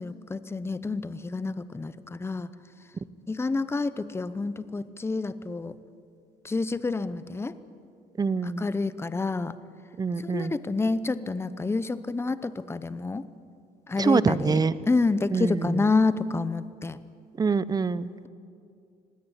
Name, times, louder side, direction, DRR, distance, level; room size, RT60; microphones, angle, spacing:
voice 1, 0.0-2.5 3.3-5.8 6.4-7.6 8.4-9.6 10.2-13.3 13.9-17.0, left 3 dB, 15° left, 15 dB, 0.7 m, -28 dB
voice 2, 8.2-8.6 10.0-10.5 14.0-14.7 15.3-15.8 17.4-18.1, right 4 dB, 25° right, 17 dB, 0.7 m, -25 dB
19.5 x 17.0 x 9.8 m, 2.4 s
cardioid pair, 110°, 17 cm